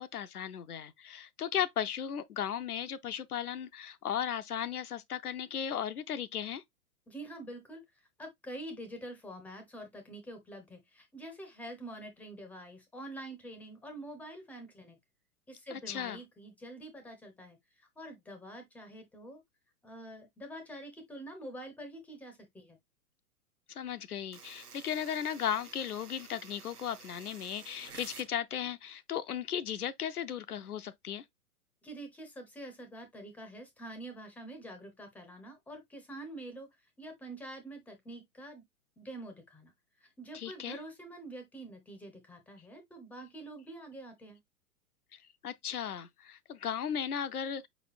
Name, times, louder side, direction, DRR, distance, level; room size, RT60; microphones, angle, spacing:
voice 1, 0.0-6.6 15.7-16.2 23.7-31.2 40.3-40.8 45.1-47.7, left 9 dB, 80° left, 0.6 m, -36 dB
voice 2, 7.1-7.8 8.2-15.0 15.5-17.6 18.0-19.4 19.8-22.8 31.8-36.7 37.0-38.6 39.0-39.7 40.0-44.4, right 1 dB, 5° left, 0.5 m, -46 dB
sound 1, 24.3-28.3, right 6 dB, 90° right, 0.8 m, -51 dB
5.0 x 4.1 x 2.3 m
figure-of-eight pair, 105°, 45 cm